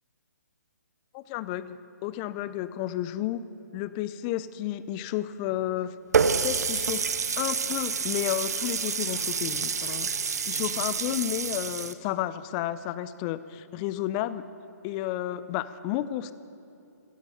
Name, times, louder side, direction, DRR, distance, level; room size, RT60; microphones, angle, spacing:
voice 1, 1.1-3.4 3.7-6.0 6.4-7.1 7.4-14.4 14.8-16.3, left 13 dB, 25° left, 15 dB, 0.5 m, -32 dB
Water tap faucet, 6.1-11.9, right 5 dB, 65° right, 0.8 m, -28 dB
17.0 x 10.5 x 6.9 m, 2.7 s
figure-of-eight pair, 140°, 9 cm